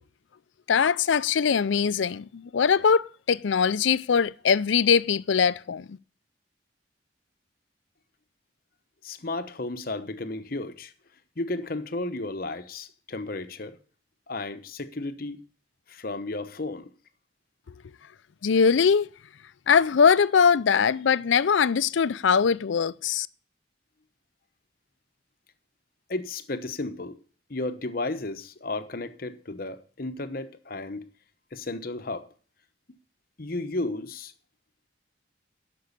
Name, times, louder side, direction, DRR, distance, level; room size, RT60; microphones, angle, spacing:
voice 1, 0.7-2.2 2.5-6.0 18.4-19.1 19.7-23.3, left 6 dB, 80° left, 0.5 m, -21 dB
voice 2, 9.0-10.9 11.4-13.8 14.3-15.4 15.9-16.9 26.1-27.2 27.5-31.1 31.5-32.3 33.4-34.3, left 2 dB, 50° left, 0.9 m, -33 dB
12.5 x 6.2 x 8.3 m
head